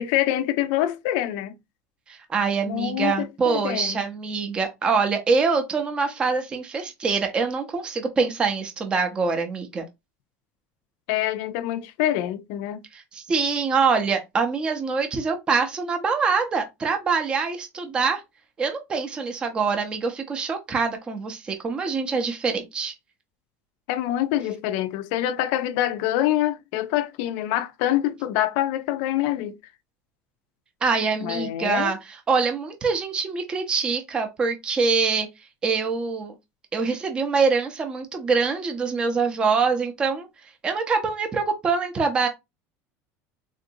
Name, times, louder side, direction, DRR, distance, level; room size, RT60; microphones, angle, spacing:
voice 1, 0.0-1.5 2.6-4.0 11.1-12.8 23.9-29.5 31.2-31.9, left 13 dB, 55° left, 0.4 m, -25 dB
voice 2, 2.1-9.8 12.9-18.2 18.6-22.9 30.8-32.0 32.3-35.3 35.6-36.3 36.7-40.3 40.6-42.3, right 5 dB, 15° right, 0.5 m, -24 dB
3.7 x 2.5 x 2.6 m
cardioid pair, 180°, 6 cm